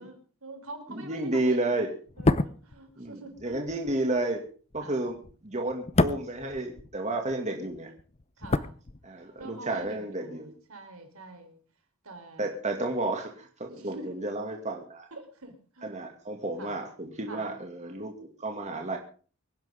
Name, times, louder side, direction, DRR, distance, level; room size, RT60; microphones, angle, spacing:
voice 1, 0.0-1.8 2.2-3.6 4.8-5.1 8.4-8.8 9.4-10.4 10.7-11.6 12.0-12.6 13.6-14.2 15.1-15.9 16.6-16.8 17.3-17.5, right 2 dB, 75° right, 5 dB, 3.8 m, -45 dB
voice 2, 1.0-1.9 3.0-4.4 4.7-5.2 5.4-7.9 9.0-10.5 12.4-15.1 15.8-19.0, right 2 dB, 35° right, 2 dB, 2.2 m, -31 dB
sound 1, 2.1-7.4 7.6-9.5 9.7-9.9, left 2 dB, 30° left, 0.7 m, -30 dB
25.0 x 10.5 x 3.7 m, 0.39 s
head